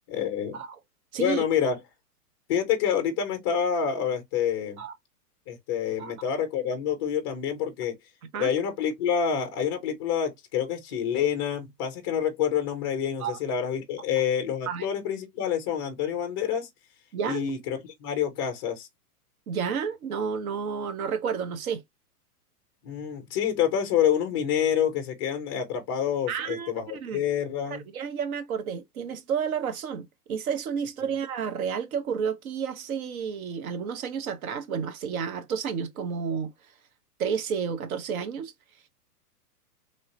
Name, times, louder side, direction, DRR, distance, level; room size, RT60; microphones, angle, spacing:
voice 1, 0.1-0.6 1.2-1.8 2.5-4.8 5.5-8.0 8.4-16.7 17.3-18.9 22.8-27.9, left 8 dB, 15° left, 0.4 m, -27 dB
voice 2, 1.1-1.4 4.8-4.9 6.0-6.1 8.3-8.5 13.2-13.4 14.7-14.9 17.1-17.5 19.5-21.8 26.3-26.7 27.0-27.2 27.7-36.5 37.2-38.5, right 7 dB, 60° right, 1.0 m, -31 dB
3.2 x 2.7 x 2.8 m
hypercardioid pair, 135°, 47 cm